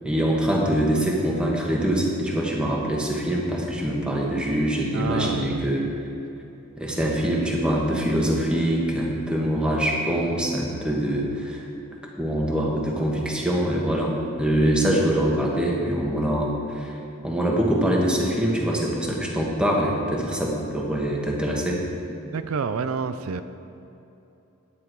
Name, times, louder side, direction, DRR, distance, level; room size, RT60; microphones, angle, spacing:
voice 1, 0.0-5.8 6.8-11.6 12.2-17.0 17.2-21.8, right 1 dB, 5° right, -2 dB, 1.4 m, -24 dB
voice 2, 4.9-5.6 22.3-23.4, right 5 dB, 80° right, 11 dB, 0.4 m, -28 dB
11.5 x 9.6 x 4.7 m, 2.9 s
head